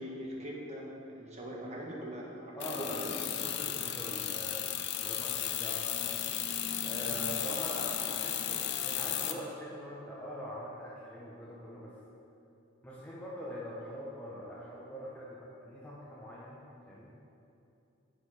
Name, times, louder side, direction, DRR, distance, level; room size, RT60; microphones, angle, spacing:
voice 1, 0.0-3.1 7.4-7.6, equal, 35° right, -3 dB, 1.6 m, -42 dB
voice 2, 2.5-6.2 6.8-11.9 12.8-17.1, equal, 5° left, -7 dB, 1.2 m, -43 dB
sound 1, 2.6-9.3, left 10 dB, 55° left, 0.6 m, -34 dB
10.5 x 7.1 x 5.1 m, 2.7 s
head